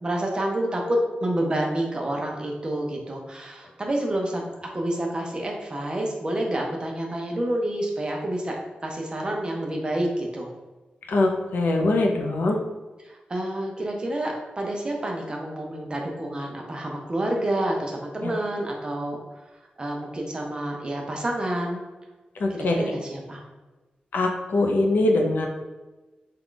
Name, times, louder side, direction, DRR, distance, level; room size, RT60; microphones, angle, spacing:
voice 1, 0.0-4.4 4.7-10.5 13.1-19.2 19.8-21.8 22.5-23.4, right 1 dB, 30° right, 0 dB, 0.7 m, -28 dB
voice 2, 11.1-12.6 18.2-18.3 22.4-22.8 24.1-25.5, left 2 dB, 85° left, 1 dB, 0.5 m, -22 dB
3.7 x 2.3 x 3.8 m, 1.2 s
wide cardioid pair, 130°, 3 cm